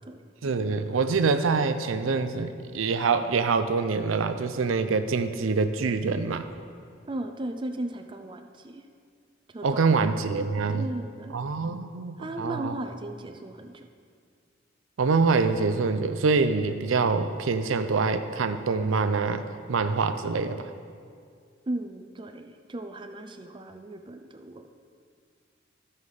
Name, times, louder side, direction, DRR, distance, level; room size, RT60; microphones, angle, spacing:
voice 1, 0.4-6.4 9.6-10.9 11.3-12.8 15.0-20.6, right 4 dB, 90° right, 9 dB, 0.5 m, -25 dB
voice 2, 7.1-8.9 9.5-10.2 10.8-11.4 12.2-13.9 21.7-24.7, right 1 dB, 25° right, 6 dB, 0.5 m, -36 dB
13.0 x 5.5 x 4.8 m, 2.2 s
head